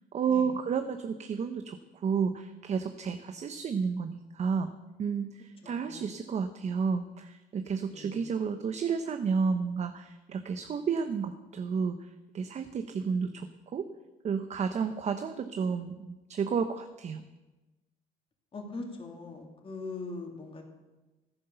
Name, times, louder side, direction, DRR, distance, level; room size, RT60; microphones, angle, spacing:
voice 1, 0.1-4.7 5.0-13.9 14.2-17.2, right 6 dB, 40° right, 8 dB, 0.9 m, -31 dB
voice 2, 5.6-6.1 7.9-8.3 18.5-20.6, left 3 dB, 30° left, 1 dB, 3.0 m, -41 dB
14.5 x 10.5 x 7.0 m, 1.1 s
cardioid pair, 110°, 17 cm